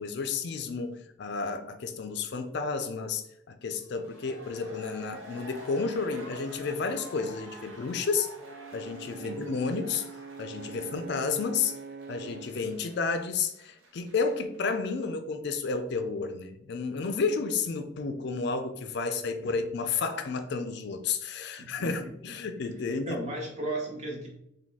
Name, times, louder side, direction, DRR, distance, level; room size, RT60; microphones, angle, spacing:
voice 1, 0.0-8.3 8.7-10.1 10.4-11.7 12.1-23.2, left 4 dB, 55° left, 8 dB, 0.4 m, -31 dB
sound 1, 3.8-14.7 15.0-15.1, equal, 75° right, 1.1 m, -49 dB
Brass instrument, 8.4-12.6, right 4 dB, 55° right, 0.3 m, -44 dB
voice 2, 9.2-9.6 10.7-10.8 19.4-19.5 21.6-22.4 22.8-24.3, right 2 dB, 35° right, -1 dB, 0.9 m, -37 dB
4.0 x 2.6 x 3.5 m, 0.80 s
head